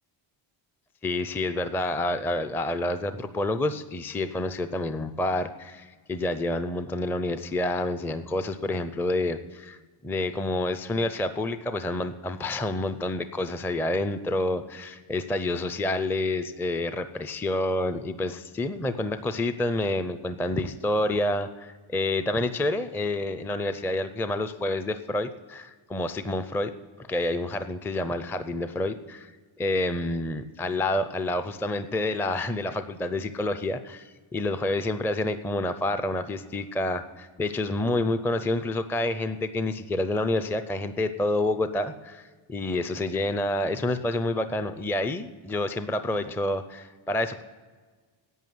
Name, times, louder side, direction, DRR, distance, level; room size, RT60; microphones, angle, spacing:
voice 1, 1.0-9.8 10.0-26.7 27.0-29.3 29.6-47.4, left 2 dB, 5° left, 10 dB, 0.4 m, -28 dB
11.0 x 8.7 x 7.7 m, 1.4 s
cardioid pair, 120°, 48 cm